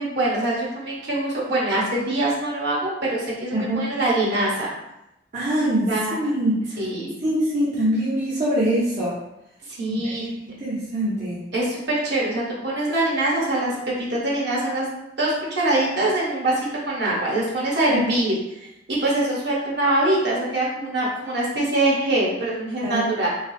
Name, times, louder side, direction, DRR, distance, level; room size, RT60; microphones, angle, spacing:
voice 1, 0.0-4.7 5.9-6.1 6.8-7.1 9.8-10.2 11.5-14.9 15.2-23.3, right 1 dB, 65° right, -5 dB, 1.0 m, -23 dB
voice 2, 3.5-3.9 5.3-6.7 7.2-9.2 9.9-10.0 10.6-11.4 17.9-18.0 22.8-23.1, right 1 dB, 40° right, -8 dB, 0.7 m, -23 dB
3.2 x 2.4 x 2.7 m, 0.86 s
head